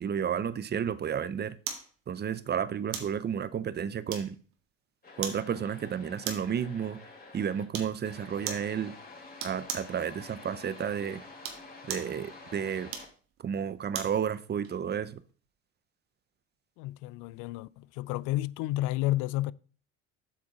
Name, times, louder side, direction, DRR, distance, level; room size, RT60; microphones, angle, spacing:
voice 1, 0.0-1.6 2.1-4.4 5.2-7.0 7.3-8.9 9.4-11.2 11.9-12.9 13.4-15.2, right 8 dB, 30° right, 0.7 m, -32 dB
sound 1, 1.7-1.9 2.9-3.2 4.1-4.5 5.2-5.5 6.2-6.6 7.7-8.0 8.5-8.7 9.4-9.9 11.3-12.1 12.9-14.2 14.6-14.8, right 7 dB, 70° right, 1.9 m, -38 dB
sound 2, 5.0-7.6 8.0-13.0, left 3 dB, 25° left, 3.3 m, -49 dB
voice 2, 16.8-19.5, left 16 dB, 60° left, 0.5 m, -31 dB
8.0 x 6.3 x 4.1 m
supercardioid pair, 85°, 36 cm